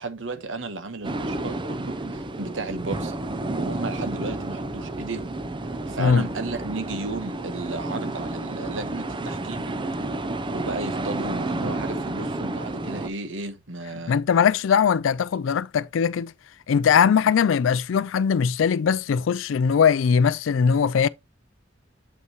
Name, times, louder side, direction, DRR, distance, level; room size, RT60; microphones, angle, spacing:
voice 1, 0.0-3.2 3.5-5.3 5.7-9.7 10.5-14.2, right 3 dB, 75° right, 1.2 m, -34 dB
sound 1, 1.0-13.1, right 2 dB, 25° right, 0.6 m, -31 dB
voice 2, 14.1-16.3 16.7-21.1, left 6 dB, 75° left, 0.4 m, -20 dB
7.8 x 5.5 x 3.0 m
head